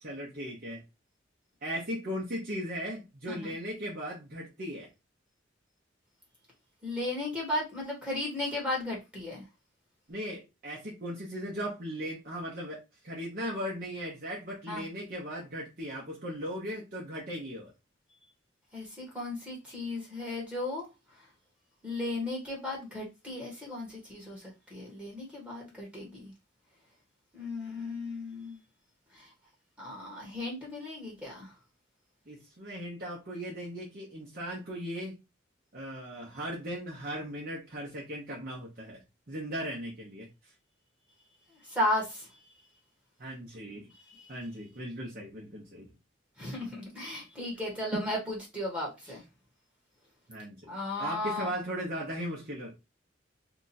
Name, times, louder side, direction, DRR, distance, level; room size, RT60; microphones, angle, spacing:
voice 1, 0.0-0.8 1.6-4.9 10.1-12.8 13.0-17.7 32.3-35.2 35.7-39.0 39.3-40.3 43.2-43.9 44.3-45.9 47.9-48.0 50.3-50.7 51.0-52.7, equal, 50° right, -3 dB, 0.9 m, -37 dB
voice 2, 6.8-9.4 14.7-14.8 18.7-20.9 21.8-24.4 24.7-26.3 27.3-28.6 29.1-29.3 29.8-31.5 41.7-42.3 44.0-44.3 46.4-49.2 50.7-51.5, left 1 dB, 5° right, -2 dB, 1.2 m, -35 dB
2.8 x 2.4 x 4.0 m, 0.25 s
head